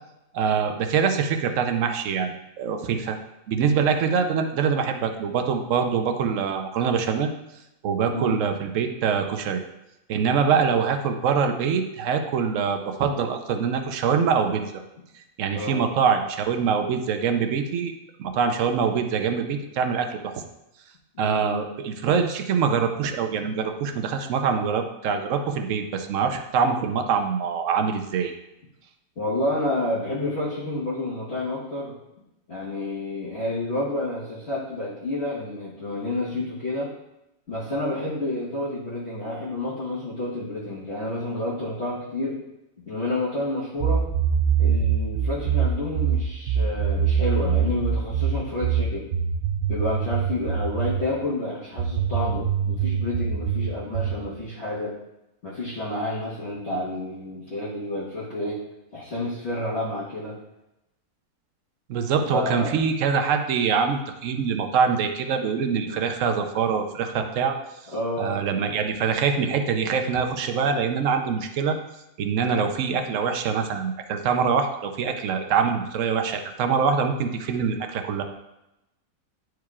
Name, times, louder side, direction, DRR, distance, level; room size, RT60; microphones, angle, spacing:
voice 1, 0.3-2.3 2.6-3.2 3.5-7.3 7.8-9.6 10.1-14.7 15.4-17.9 18.2-20.4 21.2-28.3 61.9-67.6 68.2-71.8 72.2-78.2, right 6 dB, 65° right, 6 dB, 1.0 m, -24 dB
voice 2, 8.1-8.4 15.5-15.9 21.1-21.6 29.2-31.9 32.5-36.9 37.5-42.4 42.9-44.1 44.6-49.1 49.7-55.0 55.4-58.6 58.9-60.4 62.3-62.8 65.8-66.0 67.9-68.4, left 1 dB, 50° left, -8 dB, 1.5 m, -29 dB
sound 1, 43.8-51.1 51.8-54.3, right 7 dB, 90° right, 1.1 m, -24 dB
10.0 x 4.7 x 2.4 m, 0.92 s
omnidirectional pair, 1.5 m